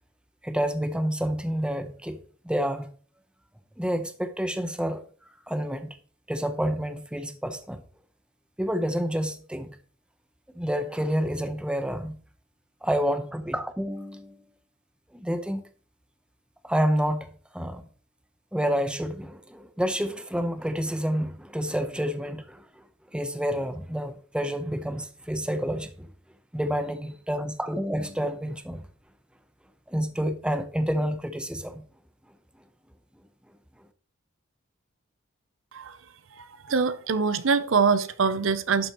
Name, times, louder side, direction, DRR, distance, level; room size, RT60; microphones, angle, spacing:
voice 1, 0.4-2.9 3.8-5.0 5.5-5.9 6.3-7.8 8.6-9.7 10.5-12.2 12.8-14.4 15.1-15.6 16.6-17.3 17.5-17.8 18.5-22.7 23.1-26.1 26.5-28.8 29.9-31.8, equal, 5° right, 0.8 m, -29 dB
voice 2, 36.7-38.9, right 5 dB, 75° right, 0.7 m, -23 dB
11.5 x 7.4 x 3.1 m
head